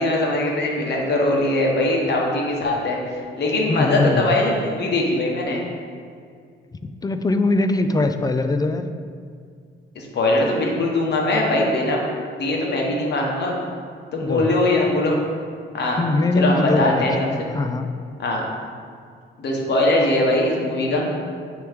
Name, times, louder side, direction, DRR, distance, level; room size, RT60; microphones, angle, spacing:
voice 1, 0.0-5.6 9.9-12.0 12.4-13.5 14.1-15.2 15.7-16.0 16.3-17.3 18.2-18.4 19.4-21.1, left 2 dB, 60° left, -1 dB, 1.3 m, -21 dB
voice 2, 3.7-4.2 7.0-8.9 14.2-14.6 16.0-17.9, left 2 dB, 20° left, 8 dB, 0.4 m, -21 dB
9.1 x 3.1 x 3.6 m, 2.1 s
cardioid pair, 90°, 20 cm